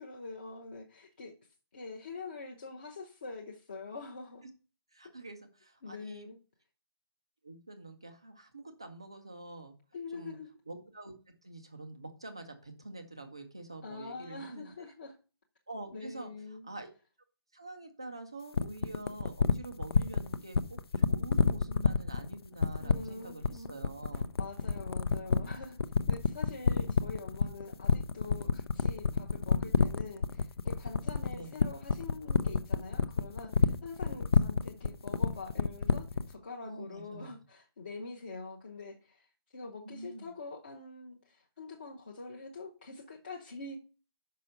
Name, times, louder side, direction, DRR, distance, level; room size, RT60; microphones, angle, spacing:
voice 1, 0.0-1.3 1.7-4.4 5.8-6.4 9.9-10.5 13.8-15.2 15.9-16.7 22.8-23.8 24.4-25.8 26.1-39.3 39.5-43.8, left 3 dB, 25° left, 0.6 m, -45 dB
voice 2, 4.9-6.3 7.4-9.7 10.1-10.4 10.7-11.1 11.4-14.7 15.7-16.3 16.6-16.9 17.5-24.3 24.6-24.7 31.3-31.5 34.0-34.1 36.6-37.3 39.8-40.3, right 2 dB, 10° right, 0.3 m, -46 dB
sound 1, 18.5-36.3, left 4 dB, 70° left, 0.6 m, -27 dB
5.7 x 5.3 x 6.3 m
hypercardioid pair, 175°, 13 cm